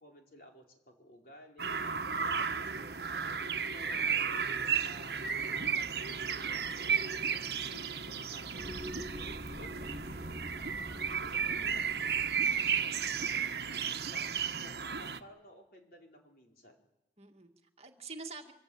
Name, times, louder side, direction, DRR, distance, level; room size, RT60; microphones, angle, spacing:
voice 1, 0.0-1.9 2.2-6.9 7.2-9.2 9.6-14.4 14.6-16.8, equal, 55° left, 0 dB, 4.9 m, -57 dB
sound 1, 1.6-15.2, right 6 dB, 65° right, 1.2 m, -34 dB
sound 2, 8.6-13.1, equal, 5° right, 7.7 m, -47 dB
voice 2, 9.8-10.3 11.6-11.9 17.2-18.5, right 3 dB, 35° right, 3 dB, 2.2 m, -48 dB
25.5 x 25.0 x 8.9 m, 0.90 s
head